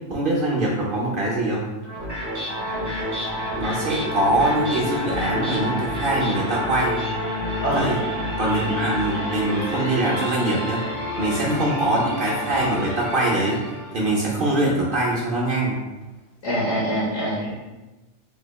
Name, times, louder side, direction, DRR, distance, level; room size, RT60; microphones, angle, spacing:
voice 1, 0.1-1.7 3.6-7.0 7.7-8.0 8.4-10.8 11.2-13.6 13.9-15.8, right 1 dB, 60° right, -4 dB, 0.6 m, -23 dB
sound 1, 1.8-14.1, left 1 dB, 20° right, 0.6 m, -29 dB
voice 2, 7.6-7.9 11.4-11.6 16.4-17.5, equal, 80° left, -5 dB, 1.4 m, -24 dB
3.4 x 2.9 x 2.3 m, 1.1 s
omnidirectional pair, 1.3 m